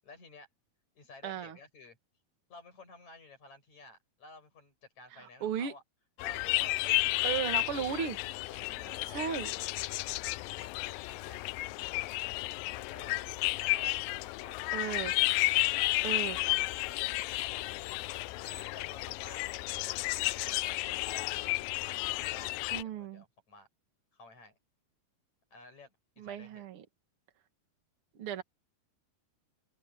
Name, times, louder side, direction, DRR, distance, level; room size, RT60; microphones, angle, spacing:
voice 1, 0.0-0.5 1.0-2.0 2.5-5.8 6.2-7.0 7.3-7.9 8.5-9.4 9.9-10.1 10.6-11.4 12.0-12.3 12.7-13.3 13.7-14.6 15.5-16.0 16.4-17.8 18.3-19.4 19.8-23.7 24.1-24.6 25.5-26.7, left 3 dB, 45° left, 8.9 m, -53 dB
voice 2, 1.2-1.6 5.1-5.7 7.2-8.2 9.1-9.5 14.7-15.2 16.0-16.4 22.7-23.2 26.2-26.9 28.2-28.4, right 8 dB, 45° right, 2.2 m, -35 dB
sound 1, 6.2-22.8, left 21 dB, 85° left, 2.0 m, -32 dB
omnidirectional pair, 4.5 m